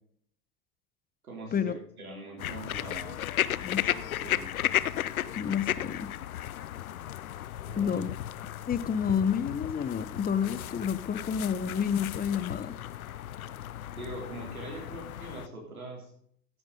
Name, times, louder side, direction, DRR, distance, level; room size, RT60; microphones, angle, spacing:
voice 1, 1.2-3.2 3.9-4.5 7.6-8.0 13.9-16.1, right 2 dB, 85° right, -1 dB, 3.5 m, -42 dB
sound 1, 2.4-15.5, left 12 dB, 80° left, 0.7 m, -34 dB
voice 2, 5.3-6.1 7.8-8.1 8.7-12.8, left 7 dB, 20° left, 14 dB, 1.1 m, -29 dB
15.5 x 10.0 x 3.9 m, 0.66 s
hypercardioid pair, 85°, 42 cm